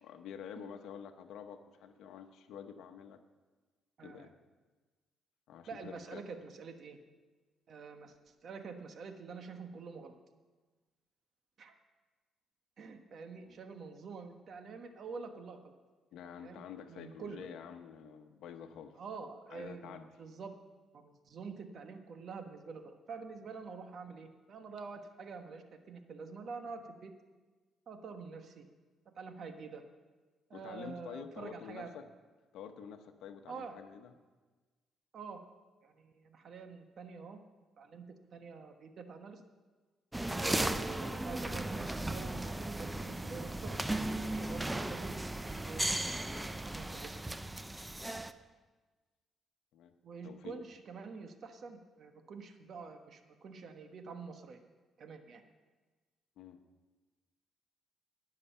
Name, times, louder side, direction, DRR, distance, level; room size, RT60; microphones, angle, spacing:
voice 1, 0.0-3.2 4.0-4.3 5.5-6.2 13.3-13.6 16.1-19.0 19.5-20.1 30.5-32.0 32.5-34.1 49.7-49.9 50.2-50.6 56.4-56.6, left 8 dB, 80° left, 8 dB, 0.9 m, -48 dB
voice 2, 4.0-4.3 5.7-7.0 7.7-10.2 11.6-11.7 12.8-15.8 16.2-17.5 19.0-20.5 20.9-27.1 27.9-28.6 29.1-29.8 30.5-31.9 33.5-33.8 35.1-35.4 35.8-37.4 37.8-38.1 38.3-39.4 40.4-45.1 45.6-47.3 50.0-54.6 55.0-55.4, right 5 dB, 60° right, 6 dB, 1.3 m, -47 dB
sound 1, 40.1-48.3, right 1 dB, 10° right, 0.5 m, -36 dB
19.0 x 6.7 x 5.6 m, 1.3 s
cardioid pair, 90°, 0 cm